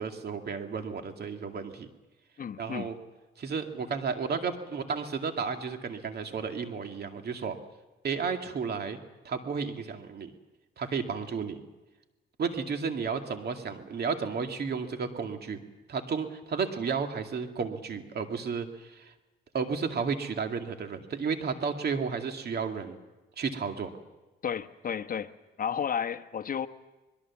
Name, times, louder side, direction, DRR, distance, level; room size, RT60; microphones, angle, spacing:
voice 1, 0.0-1.9 2.6-3.0 3.4-7.6 8.0-9.0 9.2-10.3 10.8-11.6 12.4-19.1 19.5-23.0 23.4-23.9, right 5 dB, 55° right, 2.3 m, -32 dB
voice 2, 2.4-2.9 24.4-25.3 25.6-26.7, left 8 dB, 45° left, 1.2 m, -32 dB
22.0 x 21.5 x 7.3 m
cardioid pair, 90°, 20 cm